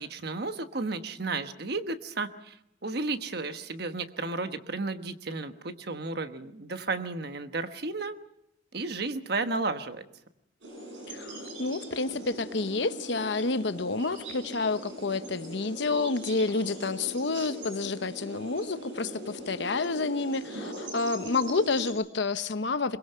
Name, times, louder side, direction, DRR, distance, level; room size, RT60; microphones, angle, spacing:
voice 1, 0.0-2.6 2.8-8.1 8.7-10.0, right 3 dB, 55° right, 9 dB, 1.2 m, -33 dB
sound 1, 10.6-21.9, right 1 dB, 75° right, 7.1 m, -41 dB
voice 2, 11.1-23.0, left 3 dB, 65° left, 12 dB, 0.9 m, -29 dB
22.5 x 21.5 x 5.6 m, 0.80 s
head